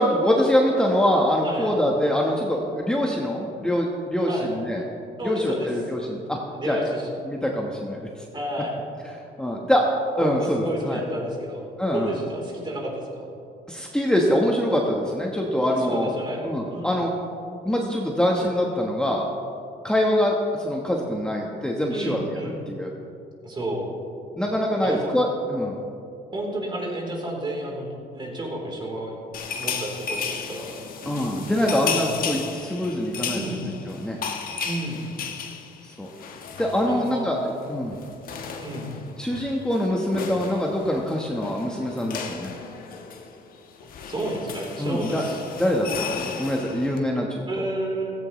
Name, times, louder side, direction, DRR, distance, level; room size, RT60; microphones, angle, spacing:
voice 1, 0.0-4.8 5.2-6.4 6.6-6.8 7.3-8.3 9.4-9.9 10.2-11.0 11.8-12.2 13.7-16.1 16.4-17.1 17.6-19.3 19.8-22.4 22.7-22.9 24.4-25.8 31.1-34.2 35.8-36.1 36.6-37.4 37.7-38.0 39.2-42.5 44.8-45.2 45.5-47.6, equal, 5° left, -1 dB, 1.2 m, -24 dB
voice 2, 5.2-5.7 6.5-7.3 8.3-8.8 10.2-11.6 11.9-13.3 15.6-16.9 21.9-22.5 23.4-23.9 24.8-25.1 26.3-29.2 29.6-30.7 31.9-32.1 33.3-33.6 34.6-35.0 36.9-37.3 38.6-38.9 43.8-45.4 47.5-48.1, right 1 dB, 30° right, -1 dB, 3.6 m, -31 dB
sound 1, 29.3-37.2 37.5-37.7 37.9-47.0, left 6 dB, 60° left, 1.4 m, -34 dB
16.0 x 15.5 x 3.2 m, 2.6 s
cardioid pair, 110°, 17 cm